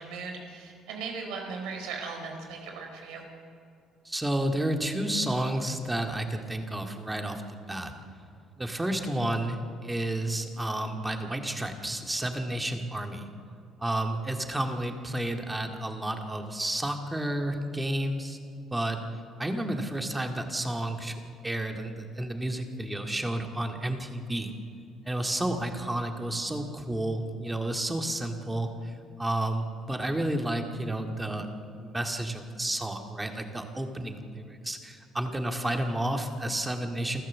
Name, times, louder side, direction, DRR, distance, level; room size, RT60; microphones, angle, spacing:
voice 1, 0.0-3.2, right 4 dB, 90° right, 3 dB, 3.9 m, -38 dB
voice 2, 4.1-7.4 7.7-7.9 8.6-13.3 13.8-19.0 19.4-21.2 21.4-24.5 25.1-28.9 29.2-31.5 31.8-37.2, right 1 dB, 10° right, 4 dB, 2.0 m, -31 dB
28.0 x 14.0 x 7.4 m, 2.4 s
cardioid pair, 120°, 0 cm